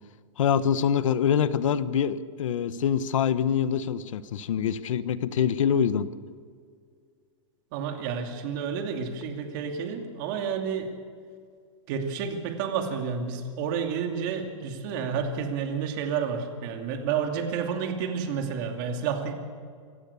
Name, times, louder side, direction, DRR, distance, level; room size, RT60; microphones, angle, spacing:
voice 1, 0.4-6.1, left 8 dB, 85° left, 14 dB, 1.1 m, -25 dB
voice 2, 7.7-10.9 11.9-19.3, right 6 dB, 40° right, 4 dB, 2.6 m, -30 dB
26.0 x 15.5 x 7.1 m, 2.2 s
supercardioid pair, 165°, 16 cm